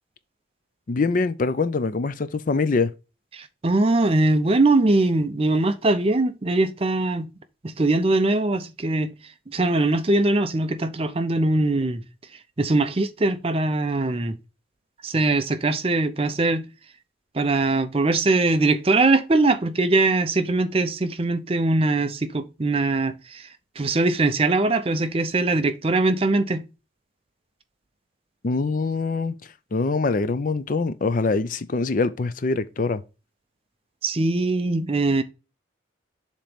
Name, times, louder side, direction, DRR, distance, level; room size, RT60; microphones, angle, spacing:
voice 1, 0.9-2.9 28.4-29.3 29.7-33.0, left 3 dB, 40° left, 0.5 m, -24 dB
voice 2, 3.3-7.3 7.6-9.1 9.5-12.0 12.6-14.4 15.0-16.7 17.3-23.5 23.8-26.6 34.0-35.2, right 2 dB, 30° right, 0.5 m, -21 dB
7.3 x 2.9 x 5.0 m
head